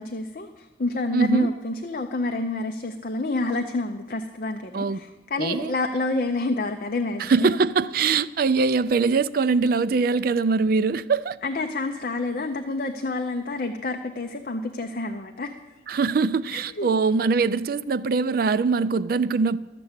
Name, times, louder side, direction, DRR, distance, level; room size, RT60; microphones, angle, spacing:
voice 1, 0.0-7.5 11.4-15.5 16.5-16.9, left 2 dB, 45° left, 0.6 m, -28 dB
voice 2, 1.1-1.5 4.7-5.0 5.4-5.7 7.2-11.4 15.9-19.6, right 4 dB, 50° right, 0.3 m, -22 dB
13.0 x 6.8 x 8.0 m
head